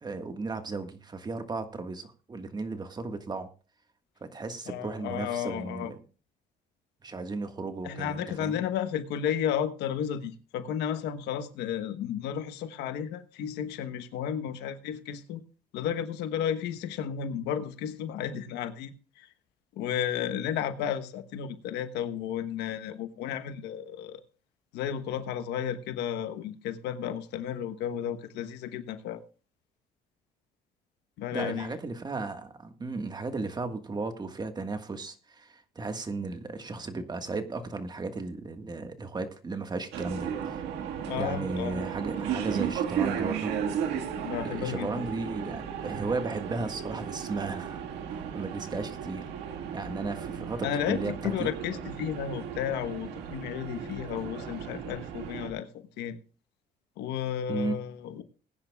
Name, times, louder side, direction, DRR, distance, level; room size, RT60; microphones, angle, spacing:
voice 1, 0.0-3.5 4.2-6.0 7.0-8.6 31.3-40.6 41.2-43.5 44.4-47.8 48.1-49.3 49.7-51.5 57.5-57.8, right 3 dB, 25° right, 1.6 m, -35 dB
voice 2, 4.7-5.9 7.8-15.4 15.7-19.3 19.8-24.2 24.7-29.2 31.2-31.8 41.0-41.9 44.2-44.9 50.6-55.7 56.0-56.2 57.0-58.2, left 9 dB, 85° left, 1.2 m, -33 dB
sound 1, 39.9-55.5, right 8 dB, 85° right, 1.8 m, -35 dB
20.0 x 10.0 x 2.3 m
cardioid pair, 110°, 17 cm